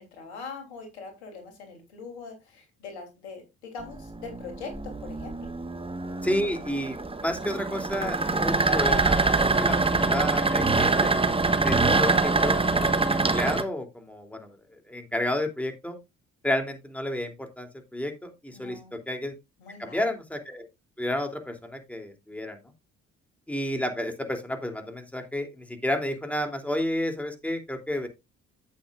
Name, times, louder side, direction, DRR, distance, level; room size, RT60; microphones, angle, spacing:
voice 1, 0.0-5.5 18.5-19.0 19.6-20.1, left 4 dB, 85° left, 5 dB, 3.3 m, -42 dB
sound 1, 3.8-13.6, right 3 dB, 15° right, 1.3 m, -24 dB
voice 2, 6.2-11.1 11.6-14.5 14.9-16.0 16.4-19.3 19.8-20.7 21.0-22.6 23.5-28.1, left 1 dB, 5° left, 5 dB, 2.9 m, -31 dB
11.5 x 8.3 x 2.5 m, 0.22 s
hypercardioid pair, 55°, 32 cm